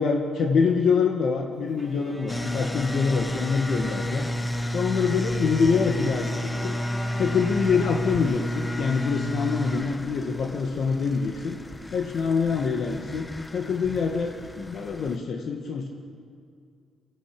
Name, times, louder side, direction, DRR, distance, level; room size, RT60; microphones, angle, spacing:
voice 1, 0.0-4.3 4.7-6.4 6.6-6.7 7.2-11.6 11.9-13.3 13.5-15.9, left 5 dB, 60° left, 2 dB, 1.8 m, -25 dB
Bowed string instrument, 1.8-5.0 6.0-8.9, left 1 dB, 10° right, 3.5 m, -42 dB
sound 1, 2.3-15.2, left 1 dB, 15° left, 1.0 m, -31 dB
22.5 x 15.5 x 8.7 m, 2.3 s
cardioid pair, 90°, 0 cm